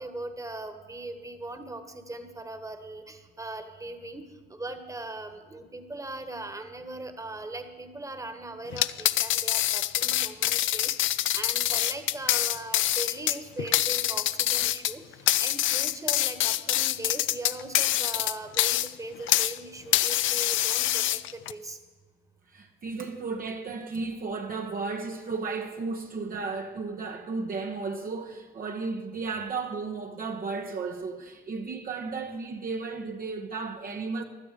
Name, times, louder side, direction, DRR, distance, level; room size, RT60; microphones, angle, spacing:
voice 1, 0.0-21.8, right 2 dB, 15° right, 1.4 m, -39 dB
sound 1, 8.7-19.6 19.9-21.5, left 14 dB, 80° left, 0.5 m, -25 dB
voice 2, 22.5-34.2, right 4 dB, 45° right, 1.0 m, -34 dB
16.5 x 11.5 x 4.9 m
cardioid pair, 90°, 20 cm